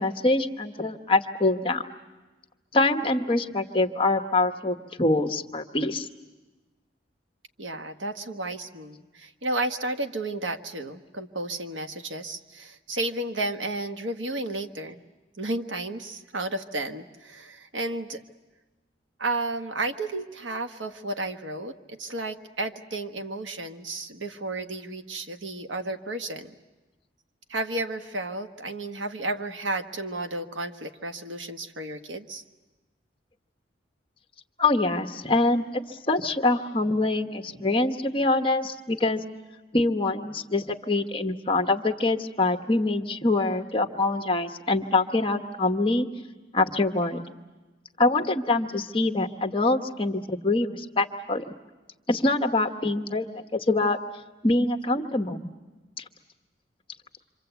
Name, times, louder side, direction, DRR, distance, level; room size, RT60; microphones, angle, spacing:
voice 1, 0.0-1.8 2.7-6.1 34.6-39.2 39.7-46.1 46.5-47.2 48.0-51.4 52.1-54.0 54.4-55.5 56.0-56.1, left 2 dB, 30° left, 5 dB, 1.1 m, -25 dB
voice 2, 7.6-15.0 15.4-18.2 19.2-26.5 27.5-32.4, right 2 dB, 90° right, 7 dB, 1.3 m, -32 dB
27.5 x 25.0 x 8.1 m, 1.2 s
head